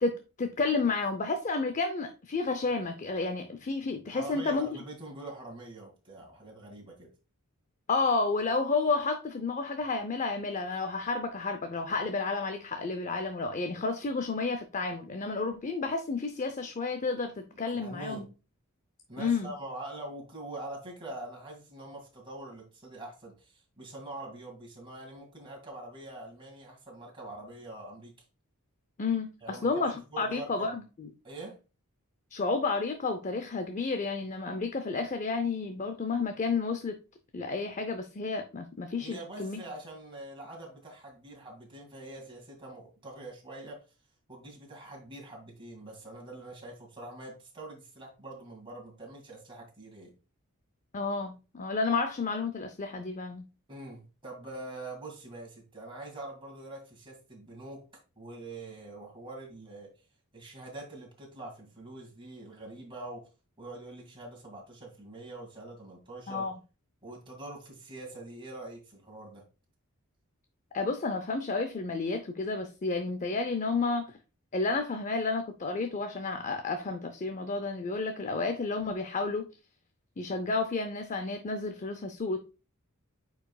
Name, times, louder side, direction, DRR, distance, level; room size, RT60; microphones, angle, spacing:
voice 1, 0.0-4.8 7.9-18.3 19.2-19.5 29.0-31.1 32.3-37.0 37.3-39.6 50.9-53.4 66.3-66.5 70.7-74.0 74.5-79.5 80.2-82.4, left 3 dB, 35° left, 0.5 m, -31 dB
voice 2, 4.1-7.1 17.7-18.3 19.1-28.1 29.4-30.7 31.2-31.6 39.0-43.8 44.3-50.1 53.7-57.8 58.2-59.9 60.3-63.3 63.6-66.5 67.0-69.4, right 2 dB, 25° right, 2.0 m, -44 dB
8.9 x 4.7 x 2.3 m
head